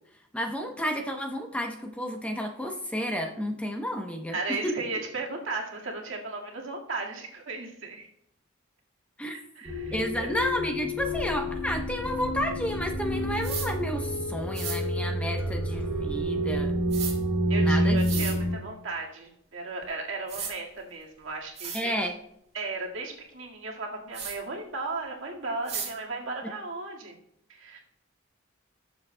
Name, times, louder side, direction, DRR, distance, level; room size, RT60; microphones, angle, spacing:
voice 1, 0.3-4.8 9.2-9.4 9.9-16.8 17.6-18.3 21.7-22.1, equal, 5° left, 3 dB, 0.8 m, -31 dB
voice 2, 4.3-8.1 9.2-10.3 17.5-21.9 22.5-27.1 27.5-27.8, right 3 dB, 70° right, 0 dB, 1.9 m, -36 dB
sound 1, 9.6-18.6, equal, 10° right, 1.2 m, -28 dB
sound 2, 13.4-13.7 14.5-14.8 16.9-17.1 18.0-18.3 19.8-19.9 20.3-20.5 21.2-21.3 21.6-21.8 24.1-24.3 25.7-25.9, right 6 dB, 35° right, 2.3 m, -34 dB
19.0 x 7.0 x 2.2 m, 0.76 s
head